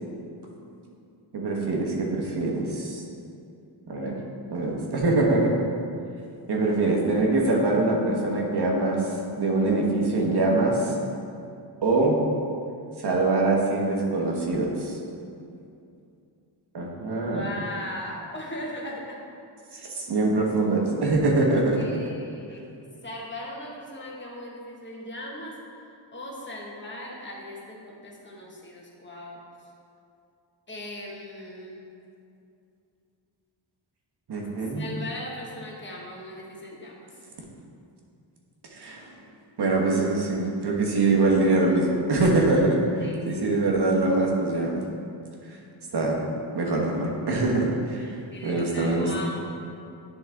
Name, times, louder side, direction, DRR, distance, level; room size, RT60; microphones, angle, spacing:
voice 1, 1.3-3.0 3.9-4.2 4.5-5.6 6.5-9.0 9.4-10.9 11.8-12.2 13.0-15.0 16.7-17.6 19.7-21.9 34.3-34.8 38.7-39.1 39.6-42.8 43.3-44.8 45.9-46.2 46.5-48.1 48.4-49.1, right 2 dB, 60° right, -1 dB, 1.3 m, -23 dB
voice 2, 17.1-19.2 21.7-22.6 23.0-25.5 26.1-29.4 30.7-31.9 34.7-37.1 43.0-43.3 48.3-49.4, left 1 dB, 25° left, -3 dB, 1.5 m, -38 dB
10.5 x 3.8 x 3.5 m, 2.5 s
cardioid pair, 85°, 46 cm